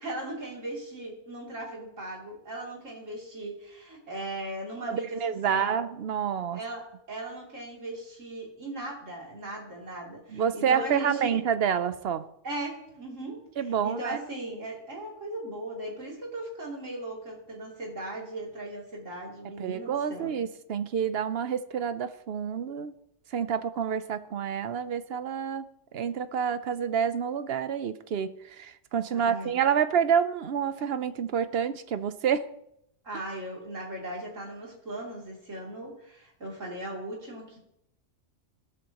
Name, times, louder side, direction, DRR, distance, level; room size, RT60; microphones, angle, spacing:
voice 1, 0.0-5.2 5.5-5.8 6.5-11.4 12.4-13.4 13.8-20.3 29.1-29.5 33.0-37.6, right 1 dB, 80° right, -3 dB, 3.4 m, -38 dB
voice 2, 4.9-6.6 10.3-12.3 13.6-14.2 19.6-22.9 23.3-25.7 25.9-32.5, right 7 dB, 60° right, 13 dB, 0.8 m, -28 dB
15.0 x 12.5 x 3.0 m, 0.80 s
omnidirectional pair, 1.3 m